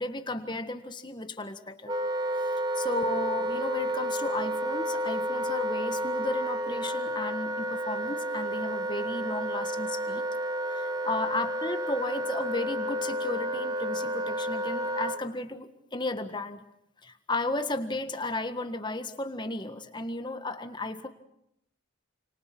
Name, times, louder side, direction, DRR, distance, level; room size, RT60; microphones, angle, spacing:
voice 1, 0.0-1.9 2.4-10.2 10.7-16.6 17.0-21.1, left 2 dB, 20° left, 8 dB, 1.7 m, -34 dB
Wind instrument woodwind instrument, 1.9-15.2, equal, 20° right, 1.6 m, -31 dB
30.0 x 26.5 x 6.2 m, 0.80 s
head